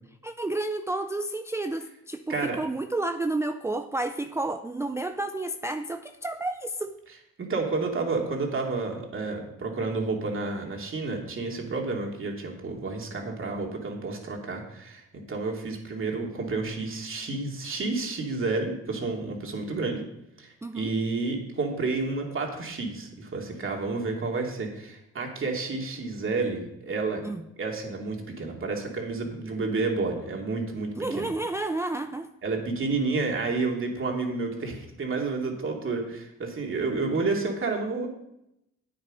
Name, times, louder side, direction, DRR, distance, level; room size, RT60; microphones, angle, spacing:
voice 1, 0.2-7.0 20.6-20.9 27.2-27.4 31.0-32.3, right 2 dB, 10° right, 8 dB, 0.4 m, -31 dB
voice 2, 7.4-15.0 15.3-20.0 20.4-27.2 27.6-31.3 32.4-38.1, right 3 dB, 45° right, 1 dB, 2.6 m, -30 dB
9.5 x 8.8 x 5.1 m, 0.84 s
cardioid pair, 90°, 30 cm